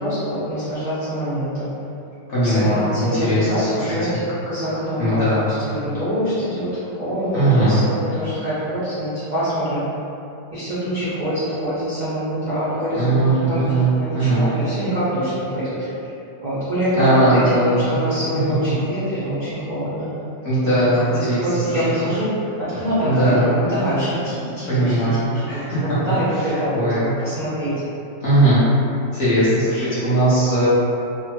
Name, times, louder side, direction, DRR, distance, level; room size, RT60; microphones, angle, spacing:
voice 1, 0.0-1.7 2.4-5.3 5.6-6.7 7.0-9.9 10.5-15.9 16.4-20.1 20.6-25.1 25.4-27.7, equal, 65° right, -13 dB, 0.4 m, -25 dB
voice 2, 2.3-3.9 5.0-5.5 7.3-7.8 12.9-13.9 14.1-14.5 16.9-18.0 20.4-21.8 23.0-23.5 24.6-26.0 26.4-27.1 28.2-28.7 29.1-30.7, right 1 dB, 55° left, -12 dB, 0.9 m, -19 dB
3.2 x 2.1 x 2.9 m, 2.8 s
omnidirectional pair, 1.9 m